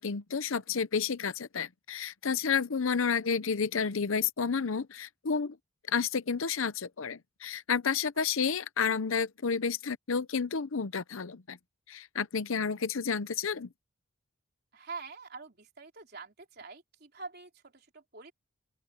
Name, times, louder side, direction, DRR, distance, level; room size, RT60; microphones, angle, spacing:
voice 1, 0.0-5.6 5.9-11.6 11.9-13.7, left 6 dB, 80° left, 0.7 m, -31 dB
voice 2, 14.7-18.3, right 4 dB, 50° right, 3.9 m, -45 dB
open air
head